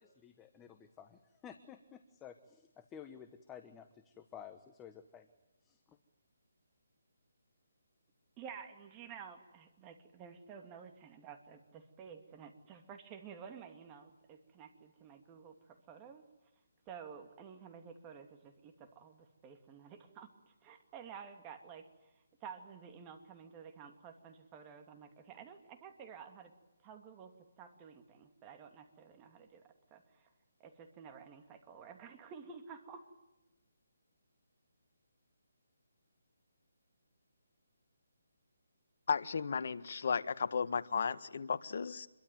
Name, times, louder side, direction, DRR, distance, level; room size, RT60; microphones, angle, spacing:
voice 1, 0.0-5.3 5.6-6.0, left 8 dB, 10° left, 7 dB, 1.2 m, -53 dB
voice 2, 8.4-16.2 16.9-22.1 22.4-26.5 26.8-30.3 30.6-33.0, right 6 dB, 15° right, 6 dB, 2.6 m, -52 dB
voice 3, 39.1-42.1, left 6 dB, 55° left, 11 dB, 1.6 m, -34 dB
27.5 x 23.0 x 9.4 m, 0.97 s
hypercardioid pair, 165°, 0 cm